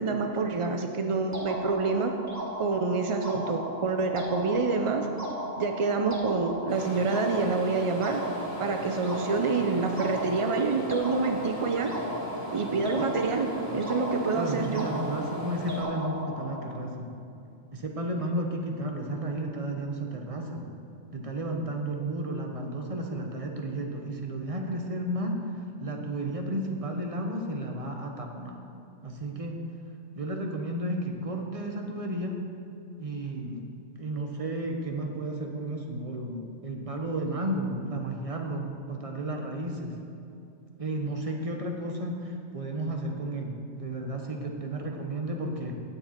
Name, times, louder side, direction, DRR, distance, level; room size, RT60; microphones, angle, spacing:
voice 1, 0.0-2.1 2.6-5.1 5.5-8.2 8.6-11.9 12.5-14.9, right 4 dB, 55° right, 4 dB, 0.3 m, -27 dB
sound 1, 1.3-16.7, equal, 15° right, 1.3 m, -36 dB
sound 2, 6.7-15.8, left 1 dB, 20° left, 1.6 m, -39 dB
voice 2, 14.3-17.1 17.7-20.7 21.1-28.6 29.0-29.6 30.1-32.4 33.0-33.7 34.0-40.0 40.8-45.8, right 1 dB, 30° right, 2 dB, 1.0 m, -33 dB
9.6 x 8.2 x 4.4 m, 2.7 s
omnidirectional pair, 1.3 m